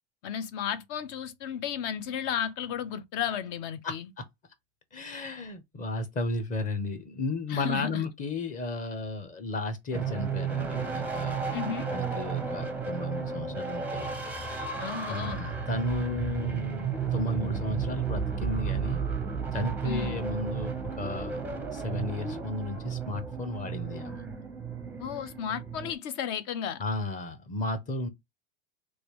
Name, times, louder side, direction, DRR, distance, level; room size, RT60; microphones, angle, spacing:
voice 1, 0.2-4.1 7.5-8.1 11.5-11.9 14.8-15.5 19.8-20.2 25.0-26.8, left 8 dB, 55° left, 0.7 m, -33 dB
voice 2, 3.8-4.2 4.9-14.7 15.1-19.0 19.5-21.4 21.7-24.2 26.8-28.1, left 2 dB, 25° left, 0.8 m, -34 dB
sound 1, 9.9-25.9, right 6 dB, 5° right, 0.6 m, -33 dB
3.2 x 2.6 x 3.0 m
supercardioid pair, 140°, 33 cm